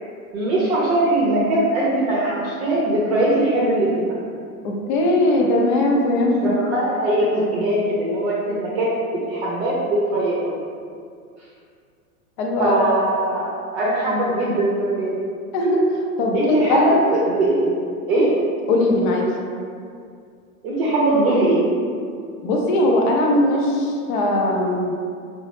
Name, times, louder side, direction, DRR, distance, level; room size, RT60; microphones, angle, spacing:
voice 1, 0.3-3.9 6.4-10.4 12.6-15.2 16.3-16.8 17.1-17.7 18.1-18.3 20.6-21.6, right 1 dB, 50° right, -7 dB, 0.6 m, -21 dB
voice 2, 4.6-6.5 7.4-7.5 12.4-12.8 15.5-15.8 16.2-17.0 18.7-19.3 22.4-24.9, left 1 dB, 35° left, -1 dB, 0.4 m, -19 dB
2.9 x 2.0 x 2.9 m, 2.3 s
hypercardioid pair, 125°, 44 cm